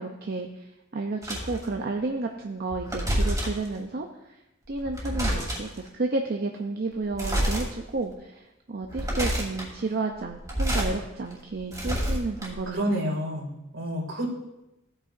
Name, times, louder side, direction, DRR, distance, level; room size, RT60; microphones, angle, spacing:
voice 1, 0.0-4.4 4.7-12.9, right 3 dB, 50° right, 3 dB, 0.6 m, -31 dB
sound 1, 1.2-1.6 2.7-3.7 4.7-5.8 7.1-7.6 8.1-8.2 8.8-9.7 10.3-10.9 11.3-12.7, equal, 15° right, 2.6 m, -28 dB
voice 2, 12.7-14.3, equal, 75° right, 0 dB, 2.4 m, -29 dB
16.0 x 8.9 x 2.6 m, 0.94 s
head